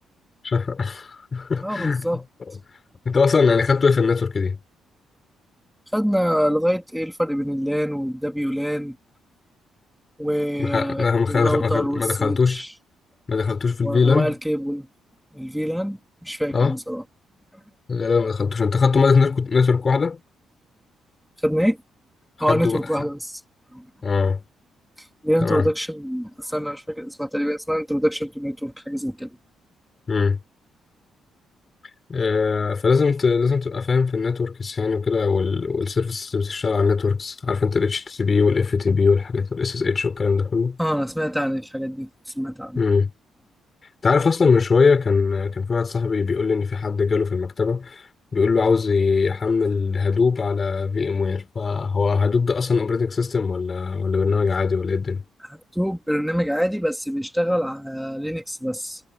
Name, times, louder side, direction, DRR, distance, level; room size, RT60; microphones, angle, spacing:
voice 1, 0.4-2.0 3.1-4.6 10.6-12.6 13.3-14.3 16.5-16.7 17.9-20.2 22.5-22.8 24.0-24.4 25.4-25.6 30.1-30.4 32.1-40.8 42.8-43.1 44.0-48.1 48.3-55.2, left 5 dB, 35° left, 6.9 m, -21 dB
voice 2, 1.6-2.2 5.9-9.0 10.2-12.7 13.8-14.9 15.3-17.0 21.4-21.8 22.4-23.4 23.7-23.9 25.0-29.4 40.8-42.8 55.4-59.0, equal, ahead, 3.8 m, -25 dB
cardioid pair, 90°, 0 cm